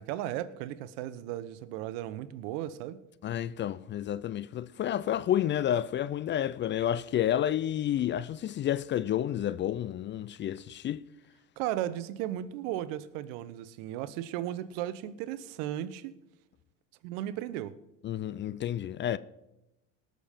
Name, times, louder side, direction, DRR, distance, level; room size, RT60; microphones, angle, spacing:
voice 1, 0.0-3.0 11.6-16.1 17.0-17.8, right 12 dB, 70° right, 0.9 m, -35 dB
voice 2, 3.2-11.0 18.0-19.2, left 11 dB, 30° left, 0.4 m, -30 dB
19.0 x 6.7 x 5.2 m
hypercardioid pair, 90°, 38 cm